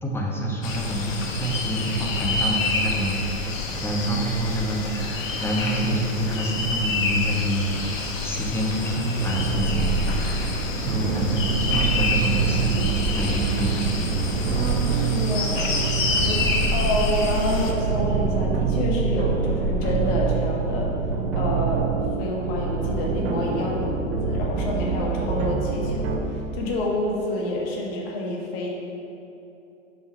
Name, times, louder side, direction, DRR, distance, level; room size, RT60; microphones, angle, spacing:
voice 1, 0.0-14.1 16.6-16.8, right 1 dB, 5° left, -2 dB, 1.0 m, -27 dB
sound 1, 0.6-17.7, left 3 dB, 70° left, 1.2 m, -28 dB
sound 2, 9.1-26.2, right 5 dB, 50° right, 0.9 m, -25 dB
voice 2, 14.5-15.7 16.2-16.4 16.7-20.9 21.3-28.7, left 1 dB, 45° left, -2 dB, 1.5 m, -28 dB
6.2 x 5.5 x 5.6 m, 2.9 s
hypercardioid pair, 110°, 39 cm